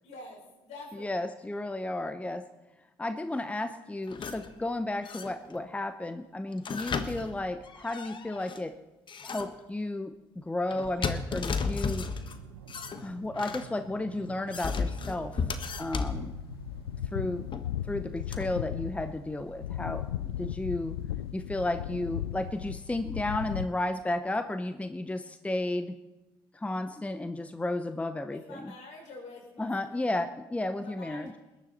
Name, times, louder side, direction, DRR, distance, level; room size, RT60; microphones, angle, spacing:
voice 1, 0.0-1.2 28.3-30.1 30.8-31.3, left 2 dB, 65° left, 0 dB, 5.4 m, -47 dB
voice 2, 0.9-2.5 3.0-8.8 9.2-12.1 13.0-15.4 15.8-16.3 17.1-17.5 17.9-21.0 21.3-26.0 26.5-28.7 29.6-31.3, left 2 dB, 10° left, 11 dB, 0.8 m, -33 dB
sound 1, 4.1-4.5 5.0-5.6 6.5-8.6 9.1-9.6 10.7-12.4 12.7-13.7 14.2-16.2 17.5-17.6 18.3-18.5, left 5 dB, 40° left, 1.3 m, -34 dB
sound 2, 12.0-17.5, right 8 dB, 80° right, 0.9 m, -49 dB
sound 3, 16.0-23.7, left 11 dB, 90° left, 0.4 m, -36 dB
20.5 x 10.5 x 4.2 m, 1.1 s
hypercardioid pair, 60°, 12 cm